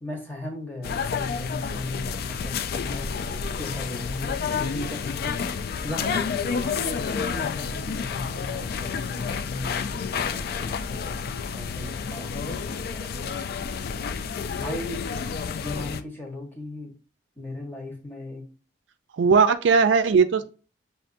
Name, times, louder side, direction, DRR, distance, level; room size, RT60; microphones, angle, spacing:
voice 1, 0.0-13.7 14.5-15.0 15.5-16.9 17.4-18.4, left 2 dB, 10° left, -1 dB, 1.2 m, -37 dB
sound 1, 0.8-16.0, left 6 dB, 55° left, 0.3 m, -30 dB
voice 2, 19.2-20.4, right 5 dB, 75° right, 10 dB, 0.4 m, -18 dB
7.2 x 2.5 x 2.6 m, 0.37 s
head